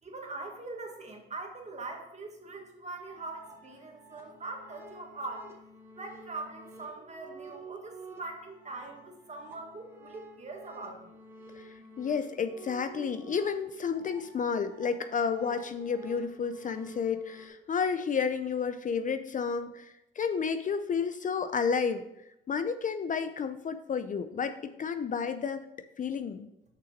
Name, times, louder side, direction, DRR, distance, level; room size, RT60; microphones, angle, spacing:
voice 1, 0.0-5.5 5.9-11.2, right 3 dB, 35° right, 2 dB, 1.8 m, -42 dB
sound 1, 3.1-17.5, right 2 dB, 10° right, 1.9 m, -50 dB
voice 2, 11.6-22.0 22.5-25.7 26.0-26.5, left 6 dB, 40° left, 11 dB, 0.5 m, -31 dB
6.8 x 5.8 x 5.0 m, 0.87 s
cardioid pair, 90°, 20 cm